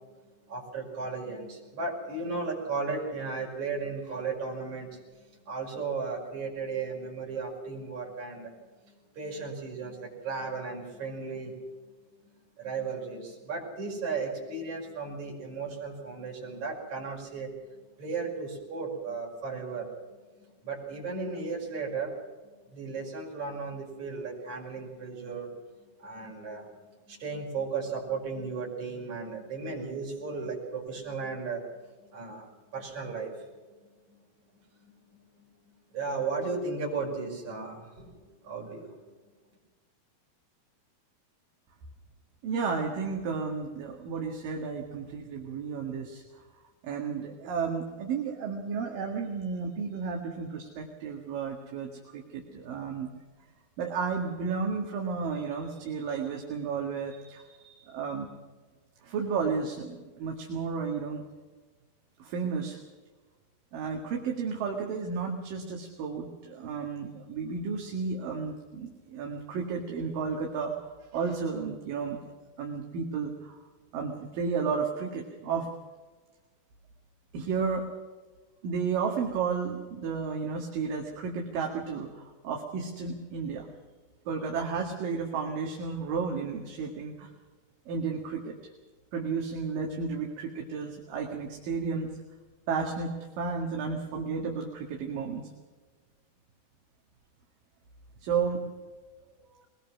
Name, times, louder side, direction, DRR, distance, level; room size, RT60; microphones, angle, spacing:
voice 1, 0.4-8.5 8.8-11.5 12.6-19.9 20.4-22.1 22.7-25.5 25.8-26.7 27.1-33.5 34.1-34.2 34.8-35.2 35.9-38.9, right 4 dB, 50° right, -2 dB, 6.7 m, -35 dB
voice 2, 42.4-46.2 46.8-53.1 53.8-58.3 59.0-61.2 62.2-62.8 63.7-72.2 72.6-73.6 73.9-75.7 77.3-77.9 78.6-83.7 84.3-87.3 87.9-88.6 89.1-92.1 92.7-95.5 98.2-98.7, right 5 dB, 70° right, 0 dB, 3.5 m, -32 dB
22.5 x 20.5 x 6.2 m, 1.3 s
omnidirectional pair, 4.3 m